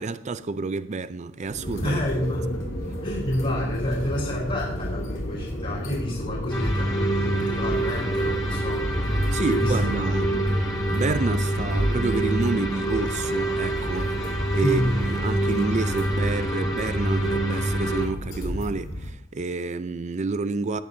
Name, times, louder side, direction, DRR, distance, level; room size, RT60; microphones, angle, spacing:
voice 1, 0.0-2.0 9.3-10.4 10.9-14.1 14.5-20.8, right 3 dB, 35° right, 0.4 m, -29 dB
sound 1, 1.4-19.1, equal, 75° left, 4.1 m, -32 dB
voice 2, 1.8-2.6 3.0-9.0 9.4-10.0 10.3-10.4 14.6-14.9, left 1 dB, 40° left, 3.8 m, -29 dB
sound 2, 6.5-18.1, right 1 dB, 20° left, 2.0 m, -26 dB
19.5 x 8.5 x 2.7 m
head